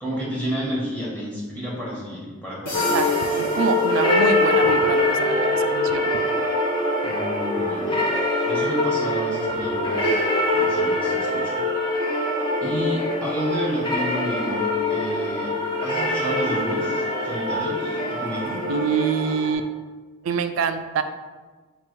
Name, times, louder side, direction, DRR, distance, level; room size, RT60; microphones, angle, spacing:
voice 1, 0.0-3.0 7.0-8.1 8.5-11.6 12.6-15.5 15.8-18.6, equal, 10° left, -6 dB, 1.0 m, -31 dB
sound 1, 2.7-4.7, left 2 dB, 85° left, 0.8 m, -36 dB
sound 2, 2.7-19.5, left 2 dB, 25° left, 0.6 m, -23 dB
voice 2, 2.9-6.1 18.7-19.7 20.2-21.0, right 6 dB, 85° right, 10 dB, 0.3 m, -26 dB
3.7 x 2.3 x 4.4 m, 1.3 s
head